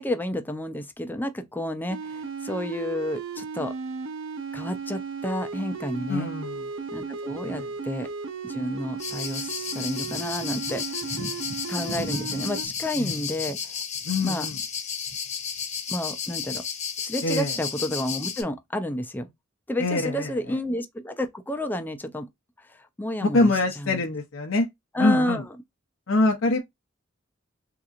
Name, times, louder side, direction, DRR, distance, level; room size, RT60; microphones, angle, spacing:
voice 1, 0.0-3.7 4.5-6.3 6.9-8.1 8.4-11.3 11.7-13.6 14.2-14.5 15.9-16.6 17.0-19.3 19.7-22.3 22.6-24.0 24.9-25.5, left 1 dB, 10° left, 0.5 m, -30 dB
sound 1, 1.9-12.7, right 5 dB, 75° right, 0.6 m, -35 dB
voice 2, 6.1-6.5 7.4-7.7 13.0-13.1 14.1-14.5 17.2-17.5 19.8-20.3 23.2-24.7 25.0-25.4 26.1-26.6, left 2 dB, 85° left, 0.7 m, -24 dB
sound 2, 9.0-18.4, left 6 dB, 35° left, 0.9 m, -33 dB
3.6 x 2.9 x 2.5 m
head